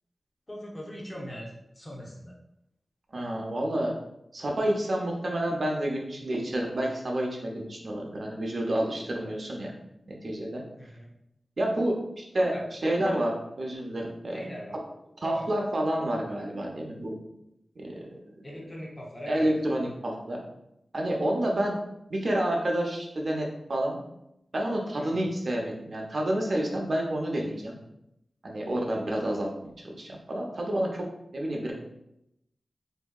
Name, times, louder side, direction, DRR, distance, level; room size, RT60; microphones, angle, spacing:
voice 1, 0.5-1.5 1.8-2.3 9.1-9.3 10.8-11.1 12.4-12.7 14.3-14.7 15.2-15.5 18.4-19.5 25.0-25.3, equal, 20° left, -2 dB, 0.8 m, -40 dB
voice 2, 3.1-3.9 4.3-9.7 10.1-10.6 11.6-14.4 15.2-17.2 17.8-18.5 19.3-20.4 20.9-21.8 22.1-24.0 24.5-27.8 28.4-31.1 31.3-31.7, right 1 dB, 50° right, 0 dB, 0.6 m, -29 dB
3.3 x 2.7 x 2.3 m, 0.81 s
wide cardioid pair, 120°, 0 cm